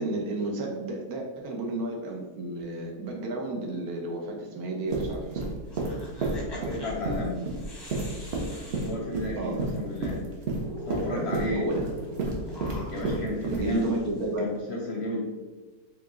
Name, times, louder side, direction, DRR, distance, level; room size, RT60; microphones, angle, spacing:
voice 1, 0.0-5.4 9.4-9.6 11.1-11.8 13.5-14.5, right 2 dB, 75° right, 1 dB, 1.3 m, -32 dB
sound 1, 4.9-13.8, right 2 dB, 50° right, 0.8 m, -31 dB
sound 2, 5.6-9.7 10.1-10.2 10.4-14.6, left 1 dB, 25° left, 0.6 m, -43 dB
voice 2, 6.5-7.4 8.8-10.2 10.9-11.7 12.9-13.9 14.4-15.3, left 1 dB, 60° left, -1 dB, 0.7 m, -33 dB
4.5 x 2.4 x 3.7 m, 1.3 s
omnidirectional pair, 1.6 m